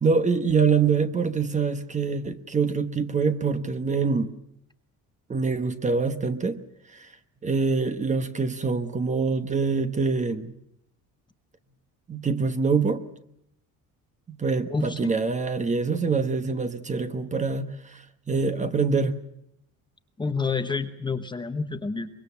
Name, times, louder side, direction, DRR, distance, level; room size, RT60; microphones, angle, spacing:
voice 1, 0.0-4.3 5.3-6.6 6.9-7.1 7.4-10.5 12.1-13.0 14.3-18.0 18.3-19.2, right 4 dB, 20° right, 10 dB, 1.1 m, -25 dB
voice 2, 14.7-15.1 20.2-22.1, left 4 dB, 15° left, 9 dB, 1.0 m, -28 dB
24.5 x 22.5 x 7.1 m, 0.77 s
cardioid pair, 165°, 35 cm